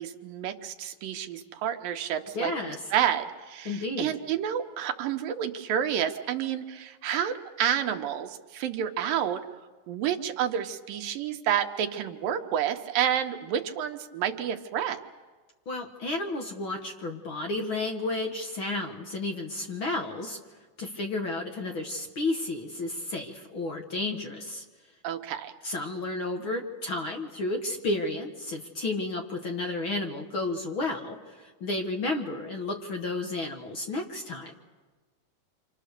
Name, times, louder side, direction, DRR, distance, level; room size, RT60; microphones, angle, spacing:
voice 1, 0.0-2.5 2.9-9.4 9.9-15.0 25.0-25.5, right 9 dB, 80° right, 6 dB, 2.8 m, -29 dB
voice 2, 2.3-2.8 3.7-4.1 15.7-20.4 20.8-24.6 25.6-34.5, left 2 dB, 45° left, 2 dB, 2.1 m, -32 dB
28.0 x 26.5 x 6.7 m, 1.3 s
omnidirectional pair, 4.0 m